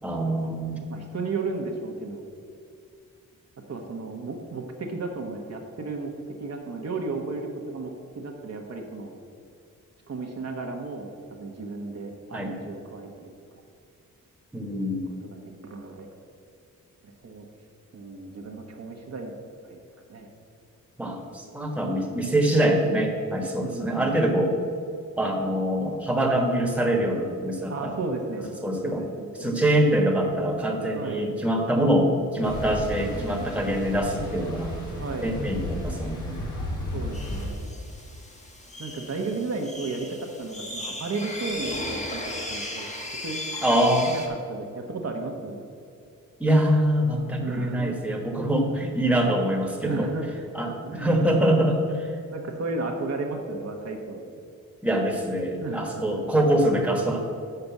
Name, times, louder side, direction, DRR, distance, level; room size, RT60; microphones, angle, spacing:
voice 1, 0.0-0.9 12.3-12.5 14.5-15.1 21.0-24.6 25.2-28.0 28.6-29.0 29.4-34.7 35.2-36.4 43.6-44.2 46.4-50.1 50.5-52.1 54.8-57.2, right 1 dB, 5° right, 1 dB, 1.3 m, -24 dB
voice 2, 0.9-2.2 3.7-9.1 10.1-13.3 14.7-15.0 15.3-16.1 17.0-17.5 17.9-19.3 19.6-19.8 20.1-20.3 23.6-24.1 27.7-28.5 28.8-29.9 31.0-31.3 35.0-35.4 36.9-37.9 38.8-42.9 43.2-43.4 44.1-44.2 44.5-45.7 47.4-48.2 49.0-49.2 49.8-50.4 50.8-51.1 52.3-54.2 55.6-56.2, right 3 dB, 50° right, 1 dB, 1.0 m, -34 dB
sound 1, 32.4-37.5, left 1 dB, 65° left, 2.0 m, -33 dB
sound 2, 37.1-44.3, left 1 dB, 20° left, 1.2 m, -36 dB
6.8 x 5.1 x 7.1 m, 2.5 s
cardioid pair, 85°, 32 cm